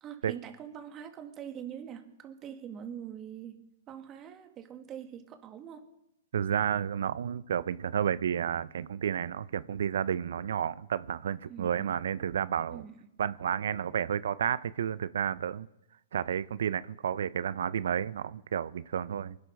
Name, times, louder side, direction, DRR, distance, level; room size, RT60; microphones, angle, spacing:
voice 1, 0.0-5.9 11.5-12.0 12.7-13.1, right 9 dB, 30° right, 1.9 m, -44 dB
voice 2, 6.3-12.8 13.2-15.7 16.1-19.4, right 8 dB, 70° right, 0.5 m, -31 dB
25.0 x 11.5 x 3.4 m
hypercardioid pair, 120°, 0 cm